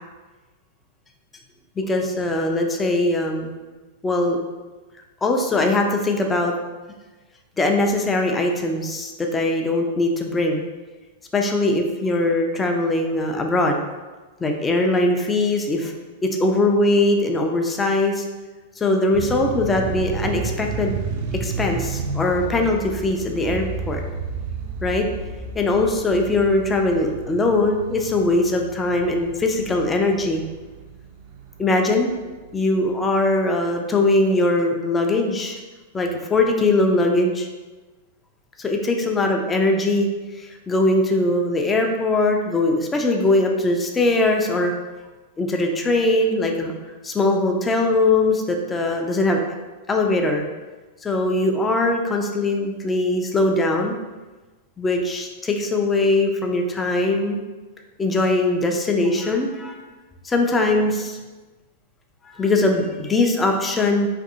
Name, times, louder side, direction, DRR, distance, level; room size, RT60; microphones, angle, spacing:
voice 1, 1.8-3.5 4.0-4.4 5.2-6.5 7.6-10.6 11.3-13.8 14.4-15.9 16.2-18.3 18.8-20.9 21.4-24.0 24.8-25.1 25.6-30.4 31.6-32.1 32.5-35.6 35.9-37.5 38.6-40.1 40.3-44.7 45.4-46.7 47.0-49.4 49.9-50.5 51.0-54.0 54.8-57.4 58.0-59.8 60.2-61.2 62.2-64.1, left 2 dB, 15° left, 2 dB, 0.3 m, -21 dB
sound 1, 19.1-32.2, right 4 dB, 55° right, 0.4 m, -32 dB
2.6 x 2.5 x 2.5 m, 1.2 s
figure-of-eight pair, 100°, 0 cm